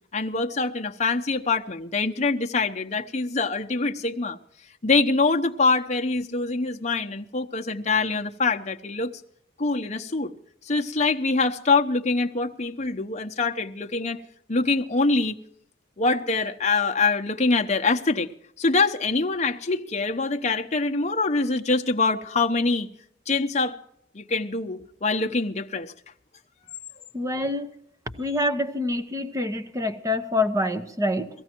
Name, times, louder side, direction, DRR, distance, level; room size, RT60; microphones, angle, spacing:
voice 1, 0.1-4.4 4.8-9.1 9.6-10.3 10.7-14.2 14.5-15.3 16.0-18.3 18.6-22.9 23.3-23.8 24.1-25.9, left 3 dB, 40° left, 0.9 m, -24 dB
voice 2, 27.1-27.7 28.2-31.3, left 1 dB, 15° right, 1.0 m, -26 dB
18.5 x 14.5 x 4.5 m
head